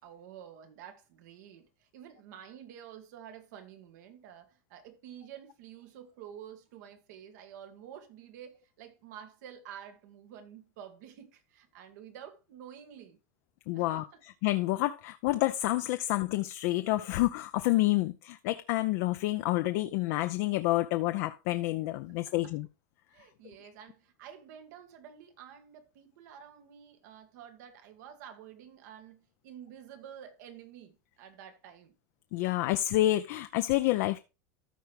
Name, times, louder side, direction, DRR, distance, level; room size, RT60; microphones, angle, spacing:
voice 1, 0.0-13.2 13.7-14.0 22.2-22.3 23.1-31.9, right 9 dB, 75° right, 1.9 m, -50 dB
voice 2, 13.7-22.7 32.3-34.2, left 17 dB, 65° left, 0.7 m, -29 dB
13.5 x 4.6 x 3.5 m
supercardioid pair, 115°, 10 cm